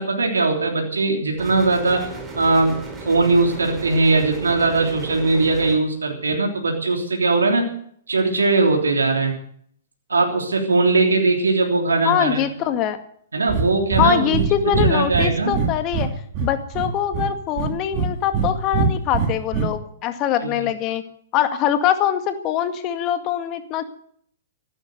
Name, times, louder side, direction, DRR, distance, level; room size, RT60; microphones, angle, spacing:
voice 1, 0.0-2.1 2.3-7.6 8.1-9.3 10.1-12.4 13.3-14.4 14.6-15.5 20.4-20.7, right 3 dB, 85° right, 2 dB, 3.3 m, -20 dB
sound 1, 1.4-5.8, right 3 dB, 15° right, 4.5 m, -35 dB
voice 2, 12.0-13.0 14.0-16.1 16.4-21.0 21.3-23.9, left 10 dB, 35° left, 8 dB, 2.0 m, -23 dB
Breathing, 13.5-13.7 13.9-14.1 14.3-14.5 14.7-16.1 16.3-17.3 17.6-18.5 18.7-19.6, right 5 dB, 40° right, 3.9 m, -21 dB
15.0 x 12.0 x 7.9 m, 0.62 s
hypercardioid pair, 120°, 0 cm